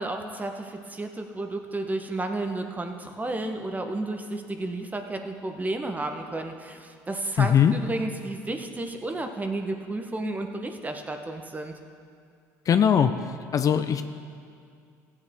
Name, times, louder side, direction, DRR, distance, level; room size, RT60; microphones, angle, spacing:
voice 1, 0.0-11.7, right 2 dB, 20° right, 5 dB, 1.1 m, -32 dB
voice 2, 7.4-7.7 12.7-13.1 13.5-14.0, left 8 dB, 45° left, 9 dB, 0.5 m, -20 dB
15.5 x 8.3 x 3.6 m, 2.3 s
hypercardioid pair, 70°, 8 cm